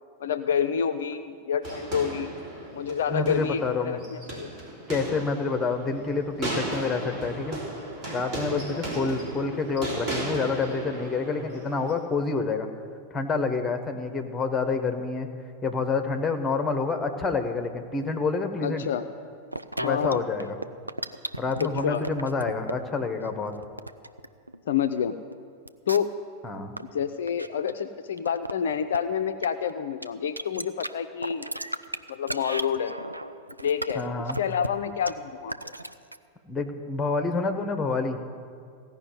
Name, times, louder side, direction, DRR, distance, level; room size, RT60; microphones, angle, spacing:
voice 1, 0.2-2.4 2.7-4.5 8.5-8.8 18.6-19.0 19.8-20.2 21.6-22.0 24.7-25.2 25.9-26.1 26.9-31.5 32.1-32.9 33.6-34.1 34.4-35.7, left 7 dB, 60° left, 9 dB, 0.4 m, -28 dB
sound 1, 1.6-11.9, right 1 dB, 35° right, 3.4 m, -36 dB
voice 2, 3.1-4.0 4.9-7.6 8.1-12.7 13.1-15.3 15.6-18.8 19.8-20.6 21.4-23.5 26.4-26.7 33.9-34.4 36.5-38.2, left 4 dB, 15° left, 7 dB, 1.2 m, -28 dB
sound 2, 19.5-20.1 20.4-22.7 23.2-24.8 25.3-25.4 25.7-26.2 26.5-26.8 27.2-27.7 28.2-28.5 28.9-29.0 29.4-29.7 30.0-30.1 30.4-30.9 31.2-34.7 35.1-35.2 35.5-36.2, right 1 dB, 85° right, 0.4 m, -34 dB
16.0 x 5.6 x 9.2 m, 2.3 s
figure-of-eight pair, 90°, 0 cm